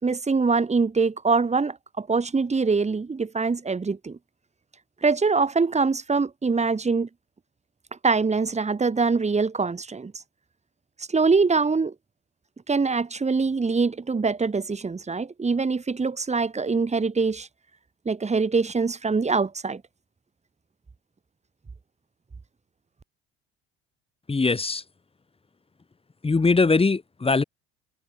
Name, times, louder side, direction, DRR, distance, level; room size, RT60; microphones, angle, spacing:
voice 1, 0.0-4.2 5.0-7.1 8.0-10.1 11.0-11.9 12.7-17.5 18.0-19.8, right 4 dB, 20° right, 3.0 m, -24 dB
voice 2, 24.3-24.8 26.2-27.4, left 4 dB, 20° left, 2.6 m, -21 dB
figure-of-eight pair, 55°, 31 cm